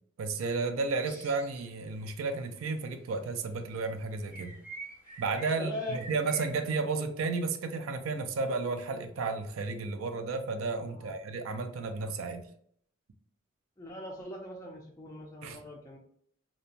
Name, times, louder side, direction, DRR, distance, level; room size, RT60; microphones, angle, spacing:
voice 1, 0.2-4.5 5.2-12.5 15.4-15.6, right 4 dB, 70° right, 8 dB, 0.4 m, -33 dB
sound 1, 0.9-1.7 2.0-2.5 3.7-3.9 4.3-6.5, right 2 dB, 5° right, 0.9 m, -47 dB
voice 2, 5.5-6.0 10.9-11.1 13.8-16.0, left 1 dB, 15° left, -2 dB, 0.3 m, -40 dB
2.9 x 2.2 x 2.4 m, 0.64 s
head